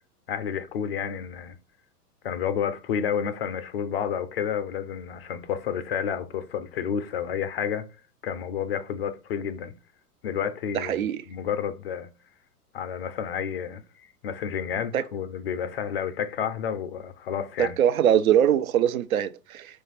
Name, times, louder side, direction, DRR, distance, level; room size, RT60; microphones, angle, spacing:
voice 1, 0.3-1.6 2.2-7.9 8.2-9.7 10.2-12.1 12.7-17.8, left 8 dB, 40° left, 0.4 m, -30 dB
voice 2, 10.7-11.2 14.9-15.0 17.8-19.7, right 10 dB, 60° right, 0.6 m, -22 dB
4.5 x 2.5 x 4.0 m
figure-of-eight pair, 105°, 47 cm